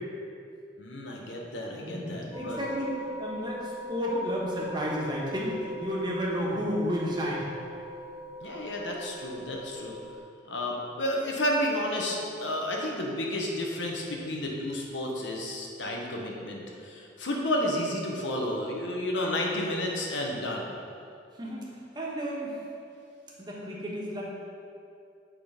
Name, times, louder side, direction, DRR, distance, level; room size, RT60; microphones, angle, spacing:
voice 1, 0.8-2.6 8.4-10.0 10.5-20.8, left 1 dB, 85° left, 0 dB, 1.1 m, -31 dB
voice 2, 1.7-7.5 21.4-22.6 23.4-24.2, equal, 25° right, -5 dB, 1.3 m, -32 dB
sound 1, 2.3-10.2, equal, 35° left, 1.7 m, -41 dB
8.7 x 3.8 x 5.1 m, 2.5 s
head